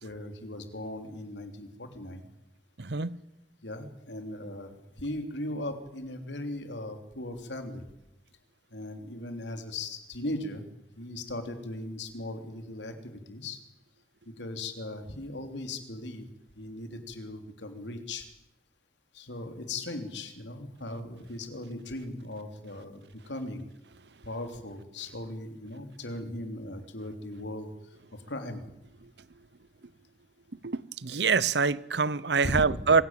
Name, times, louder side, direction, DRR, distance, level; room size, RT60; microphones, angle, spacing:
voice 1, 0.0-2.3 3.6-7.8 8.7-10.6 11.0-13.6 14.4-16.2 16.6-18.3 19.1-23.7 24.2-27.7 28.1-28.6 32.4-32.6, left 1 dB, 85° left, 3.3 m, -38 dB
voice 2, 2.8-3.2 30.6-33.0, right 5 dB, 70° right, 0.9 m, -25 dB
25.5 x 17.0 x 9.1 m
head